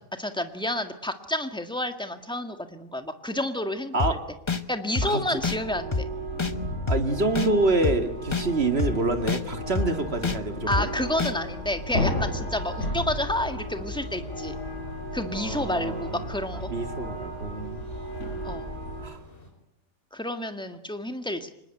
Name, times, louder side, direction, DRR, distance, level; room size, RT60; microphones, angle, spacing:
voice 1, 0.2-4.2 4.7-6.1 10.7-14.6 15.1-16.7 18.4-18.7 20.1-21.5, left 1 dB, 5° left, 7 dB, 1.7 m, -30 dB
sound 1, 4.0-4.1 4.5-4.6 5.0-5.1 5.4-5.6 5.9-6.0 6.4-6.5 6.9-7.0 7.4-7.5 7.8-8.0 8.3-8.4 8.8-8.9 9.3-9.4 9.8-9.9 10.2-10.4 10.7-10.8 11.2-11.3, left 4 dB, 25° left, 0.9 m, -26 dB
voice 2, 5.0-5.4 6.9-10.9 15.3-16.2 16.5-17.8 19.0-19.2, right 2 dB, 45° right, 7 dB, 2.3 m, -27 dB
sound 2, 5.4-19.1, equal, 55° left, 6.0 m, -34 dB
sound 3, 7.4-19.5, left 1 dB, 40° left, 5.1 m, -51 dB
25.5 x 20.5 x 9.0 m, 0.77 s
omnidirectional pair, 1.5 m